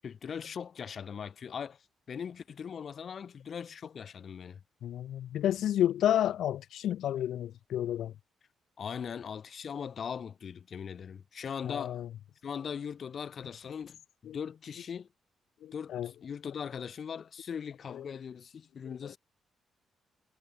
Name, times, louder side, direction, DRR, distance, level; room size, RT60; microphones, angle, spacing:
voice 1, 0.0-4.6 8.8-12.0 12.4-15.1 15.7-19.2, left 7 dB, 45° left, 7.9 m, -40 dB
voice 2, 4.8-8.1 11.6-12.1 14.3-14.4 15.6-16.1 17.9-18.0 19.0-19.1, left 11 dB, 75° left, 2.8 m, -31 dB
cardioid pair, 160°, 0 cm